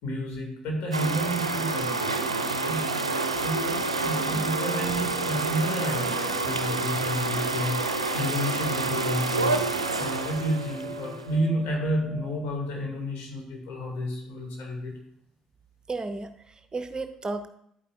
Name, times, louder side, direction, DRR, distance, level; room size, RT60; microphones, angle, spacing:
voice 1, 0.0-15.0, equal, 60° left, 0 dB, 2.3 m, -31 dB
sound 1, 0.9-11.4, right 3 dB, 85° right, 0.4 m, -28 dB
sound 2, 4.2-12.5, left 1 dB, 15° left, 1.6 m, -43 dB
voice 2, 15.9-17.5, right 3 dB, 25° right, 9 dB, 0.6 m, -34 dB
11.5 x 9.0 x 2.5 m, 0.72 s
figure-of-eight pair, 50°, 3 cm